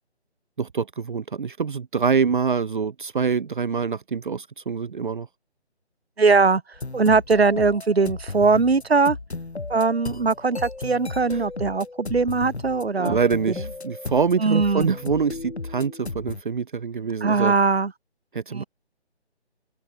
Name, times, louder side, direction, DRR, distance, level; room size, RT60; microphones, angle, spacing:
voice 1, 0.6-5.3 11.3-11.5 13.0-17.5 18.3-18.6, right 6 dB, 45° right, 1.2 m, -25 dB
voice 2, 6.2-6.6 6.9-9.2 9.7-13.2 14.4-14.9 17.2-17.9 18.5-18.6, right 4 dB, 65° right, 3.7 m, -20 dB
sound 1, 6.8-16.4, left 3 dB, 70° left, 6.6 m, -35 dB
open air
figure-of-eight pair, 155°, 34 cm